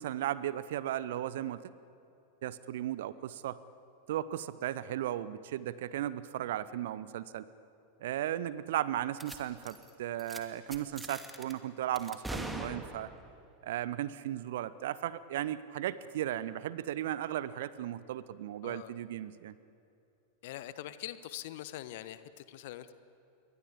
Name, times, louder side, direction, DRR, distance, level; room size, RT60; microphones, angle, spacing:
voice 1, 0.0-1.6 2.4-3.6 4.1-7.5 8.0-13.1 13.6-19.5, right 12 dB, 55° right, 17 dB, 0.9 m, -36 dB
sound 1, 9.2-9.4 9.6-9.9 10.2-10.4 10.7-11.5 12.0-13.3, right 1 dB, 5° right, 2.4 m, -41 dB
voice 2, 20.4-22.9, left 13 dB, 50° left, 14 dB, 1.2 m, -43 dB
29.0 x 23.0 x 8.6 m, 2.7 s
figure-of-eight pair, 90°, 0 cm